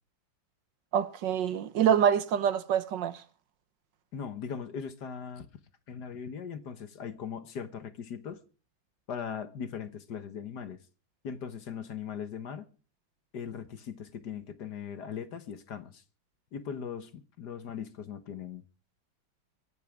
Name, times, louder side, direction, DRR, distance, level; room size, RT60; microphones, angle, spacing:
voice 1, 0.9-3.2, right 8 dB, 70° right, 1.5 m, -26 dB
voice 2, 4.1-5.5 5.9-8.4 9.1-10.8 11.2-12.7 13.3-16.0 16.5-18.6, left 7 dB, 60° left, 1.7 m, -39 dB
23.0 x 11.0 x 3.5 m
omnidirectional pair, 2.2 m